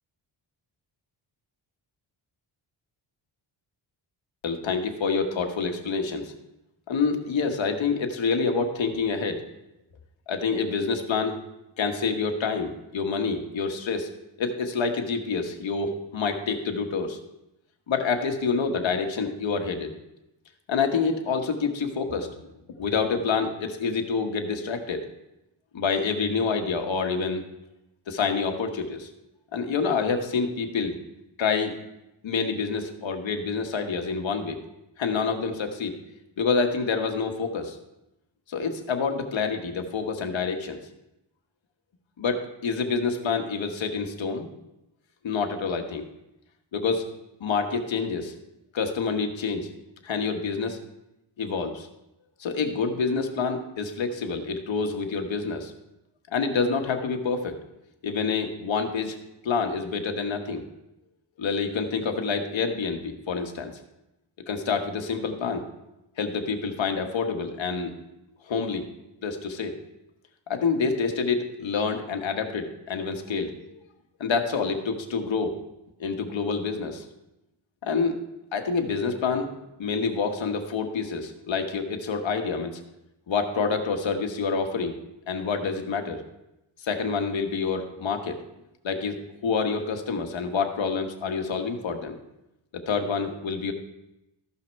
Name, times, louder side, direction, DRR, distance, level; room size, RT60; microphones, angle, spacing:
voice 1, 4.4-6.3 6.9-9.5 10.3-11.4 11.8-14.1 14.4-17.2 17.9-19.9 20.7-22.3 22.8-25.0 25.7-27.4 28.1-29.1 29.5-31.0 31.4-31.7 32.2-34.6 35.0-35.9 36.4-37.8 38.5-40.8 42.2-44.5 45.2-46.0 46.7-47.1 47.4-48.3 48.7-49.7 50.0-50.8 51.4-51.9 52.4-55.7 56.3-57.6 58.0-59.2 59.4-60.6 61.4-63.7 64.5-65.6 66.2-67.9 68.5-68.8 69.2-69.7 70.5-73.5 74.2-75.5 76.0-77.0 77.8-78.2 78.5-79.5 79.8-82.8 83.3-85.0 85.3-86.2 86.8-88.4 88.8-89.2 89.4-92.2 92.7-93.7, left 5 dB, 65° left, 5 dB, 1.4 m, -27 dB
14.0 x 5.7 x 4.6 m, 0.90 s
cardioid pair, 95°, 48 cm